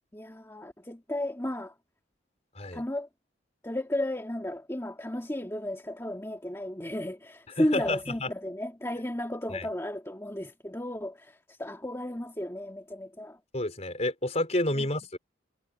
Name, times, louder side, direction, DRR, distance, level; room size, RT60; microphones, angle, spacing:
voice 1, 0.1-1.7 2.7-3.1 3.6-13.4 14.8-14.9, left 1 dB, 15° left, 2.2 m, -33 dB
voice 2, 7.6-8.3 9.5-9.7 13.5-15.2, left 1 dB, 35° left, 5.0 m, -30 dB
head